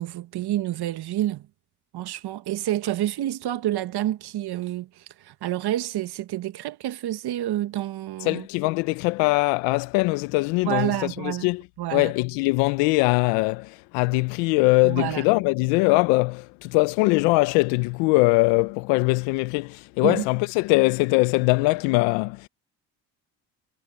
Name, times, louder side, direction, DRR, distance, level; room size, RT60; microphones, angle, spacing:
voice 1, 0.0-1.5 1.9-8.5 10.6-11.5 11.8-12.1 14.8-15.2 20.0-20.2, right 13 dB, 60° right, 1.5 m, -28 dB
voice 2, 8.2-11.6 11.9-22.5, left 24 dB, 80° left, 0.9 m, -22 dB
hypercardioid pair, 60°, 43 cm